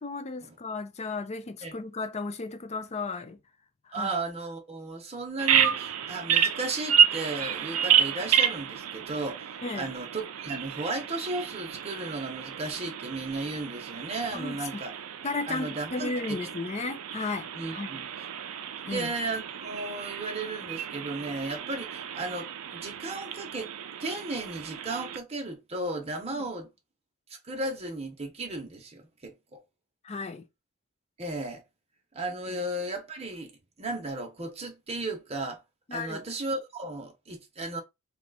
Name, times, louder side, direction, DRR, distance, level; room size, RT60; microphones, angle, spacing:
voice 1, 0.0-3.4 3.9-4.1 9.6-9.9 14.3-14.8 15.2-17.9 18.8-19.1 26.3-26.4 30.0-30.5 32.5-32.6 35.9-36.2, left 3 dB, 30° left, 0.5 m, -34 dB
voice 2, 3.9-14.9 15.5-16.4 17.5-18.1 18.8-23.7 24.0-26.7 27.4-29.6 31.2-31.6 32.1-33.5 33.8-35.6 35.9-37.8, right 2 dB, 30° right, 0.9 m, -35 dB
Bird vocalization bird call bird song, 5.4-25.2, right 8 dB, 70° right, 0.4 m, -30 dB
2.8 x 2.4 x 4.0 m
head